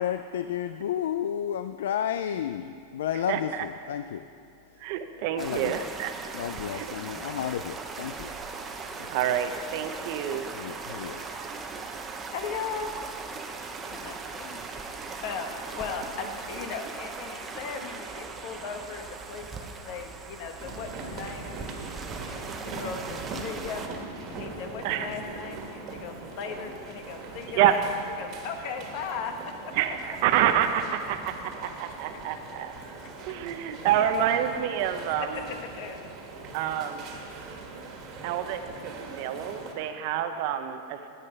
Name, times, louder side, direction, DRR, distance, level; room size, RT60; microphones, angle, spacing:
voice 1, 0.0-4.3 5.4-5.9 6.3-8.3 10.5-11.2, left 9 dB, 85° left, 10 dB, 0.3 m, -32 dB
voice 2, 3.3-3.7 4.8-6.1 6.7-6.9 9.1-10.4 24.8-25.1 27.5-27.8 29.7-32.7 33.2-35.5 36.5-37.1 37.6-37.7 38.2-41.0, right 10 dB, 55° right, 8 dB, 0.6 m, -27 dB
sound 1, 5.4-23.9, right 4 dB, 20° right, 0.8 m, -39 dB
voice 3, 12.3-12.9 13.8-14.6 15.2-15.5 15.8-23.8 24.3-27.8 28.2-29.7 33.7-33.8 35.3-36.0, left 6 dB, 55° left, 5 dB, 1.0 m, -38 dB
sound 2, 20.6-39.7, right 3 dB, 40° right, 1.6 m, -41 dB
9.8 x 9.0 x 5.4 m, 2.6 s
supercardioid pair, 135°, 0 cm